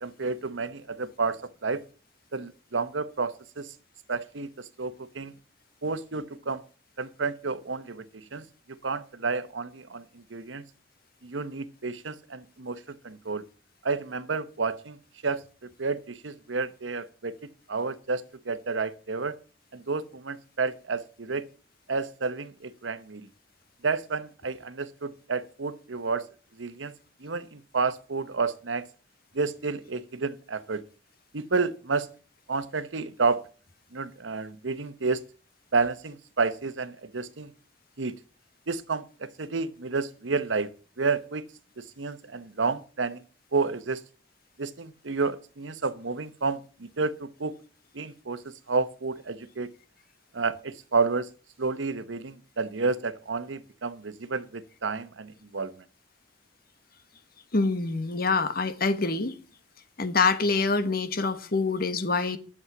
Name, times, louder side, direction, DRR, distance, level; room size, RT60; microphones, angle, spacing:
voice 1, 0.0-1.8 2.3-3.7 4.1-5.3 5.8-6.6 7.0-10.6 11.2-13.4 13.8-15.0 15.2-17.4 17.7-19.4 19.7-21.4 21.9-23.3 23.8-26.3 26.6-26.9 27.2-28.9 29.3-30.8 31.3-32.1 32.5-33.4 33.9-35.2 35.7-37.5 38.0-38.1 38.7-40.7 41.0-41.5 41.8-43.2 43.5-44.0 44.6-47.6 47.9-49.7 50.3-51.3 51.6-55.8, right 4 dB, 85° right, 1.0 m, -30 dB
voice 2, 57.5-59.4 60.0-62.4, left 3 dB, 55° left, 1.3 m, -25 dB
11.0 x 7.3 x 7.2 m
head